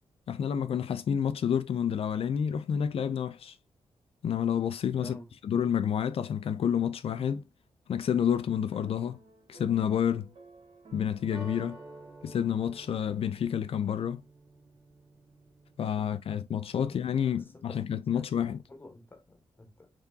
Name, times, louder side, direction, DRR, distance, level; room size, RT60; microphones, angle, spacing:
voice 1, 0.3-3.5 4.2-5.2 5.4-7.4 7.9-9.2 9.5-10.3 10.9-11.8 12.2-14.2 15.8-18.6, left 8 dB, 65° left, 0.4 m, -29 dB
voice 2, 5.0-5.3 16.8-17.8 18.1-19.9, left 1 dB, 20° left, 1.0 m, -50 dB
sound 1, 8.7-13.2, right 3 dB, 55° right, 1.3 m, -55 dB
sound 2, 11.3-16.1, right 2 dB, 20° right, 1.6 m, -50 dB
3.7 x 3.5 x 2.6 m
wide cardioid pair, 135°, 11 cm